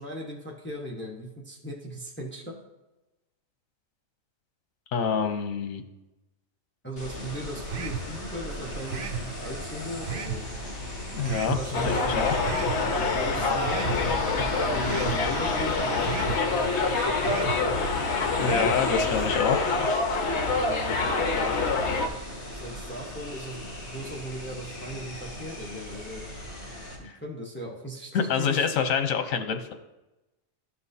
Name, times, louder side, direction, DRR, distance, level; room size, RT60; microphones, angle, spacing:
voice 1, 0.0-2.6 6.8-10.4 11.4-12.3 12.9-14.0 14.5-17.8 18.2-18.7 20.6-21.6 22.5-26.2 27.0-28.7, equal, 10° left, -2 dB, 0.9 m, -38 dB
voice 2, 4.9-5.8 11.1-12.3 18.4-20.2 27.0-27.2 28.1-29.7, left 6 dB, 85° left, 7 dB, 1.2 m, -27 dB
sound 1, 7.0-27.0, equal, 40° left, 3.2 m, -37 dB
sound 2, 7.7-8.1 8.9-9.3 10.1-10.4 11.3-11.6 12.4-12.8 13.6-14.0 14.8-15.2 16.0-16.4 17.2-17.6 18.4-18.8, right 7 dB, 50° right, 0.7 m, -33 dB
Subway metro underground, 11.7-22.1, left 3 dB, 60° left, 1.2 m, -26 dB
13.5 x 5.8 x 2.7 m, 1.0 s
omnidirectional pair, 1.4 m